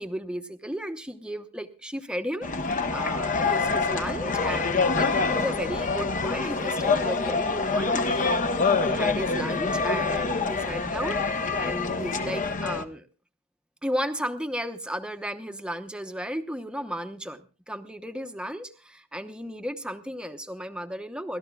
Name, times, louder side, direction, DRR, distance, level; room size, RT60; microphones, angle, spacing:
voice 1, 0.0-11.2 11.6-13.1 13.8-21.4, equal, 5° right, 8 dB, 0.9 m, -34 dB
sound 1, 2.4-12.8, left 4 dB, 35° left, 0.9 m, -26 dB
29.0 x 13.5 x 2.3 m, 0.34 s
head